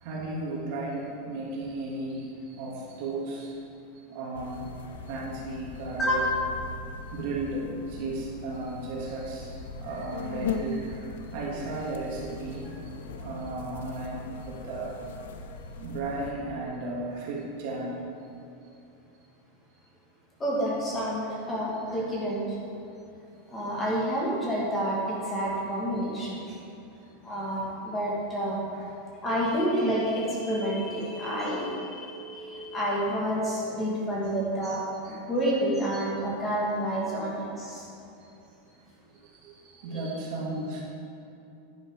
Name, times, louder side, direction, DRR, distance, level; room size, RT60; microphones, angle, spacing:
voice 1, 0.0-3.6 4.1-4.7 5.1-6.3 7.1-12.7 13.0-15.0 15.8-18.0 21.9-22.0 28.7-28.8 35.0-35.2 38.2-38.3 39.2-40.8, right 2 dB, 45° right, -3 dB, 2.2 m, -35 dB
sound 1, 4.3-16.3, left 4 dB, 80° left, 0.7 m, -39 dB
voice 2, 6.0-6.8 20.4-22.4 23.5-26.5 27.2-28.6 29.2-37.8 39.9-40.0, equal, 15° left, -5 dB, 1.7 m, -29 dB
10.5 x 10.0 x 3.6 m, 2.8 s
supercardioid pair, 180°, 0 cm